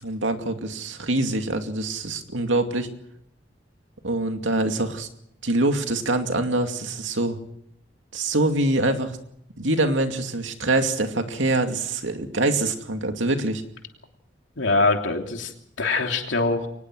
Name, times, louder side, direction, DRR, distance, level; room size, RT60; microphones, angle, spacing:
voice 1, 0.0-2.9 4.0-5.1 5.4-7.4 8.1-9.2 9.6-13.6, right 2 dB, 85° right, 5 dB, 2.5 m, -24 dB
voice 2, 14.6-16.7, left 3 dB, 80° left, 3 dB, 3.1 m, -23 dB
23.5 x 19.5 x 6.4 m, 0.72 s
head